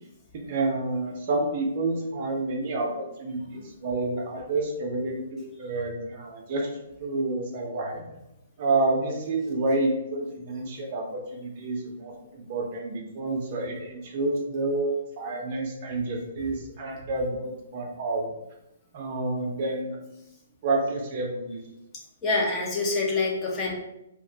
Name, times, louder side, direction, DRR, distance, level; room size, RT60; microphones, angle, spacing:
voice 1, 0.5-6.7 7.0-8.0 8.6-18.3 18.9-20.0 20.6-21.6, right 2 dB, 45° right, 1 dB, 0.5 m, -29 dB
voice 2, 22.2-23.7, left 3 dB, 20° left, -3 dB, 0.5 m, -26 dB
2.3 x 2.1 x 2.7 m, 0.88 s
hypercardioid pair, 155°, 0 cm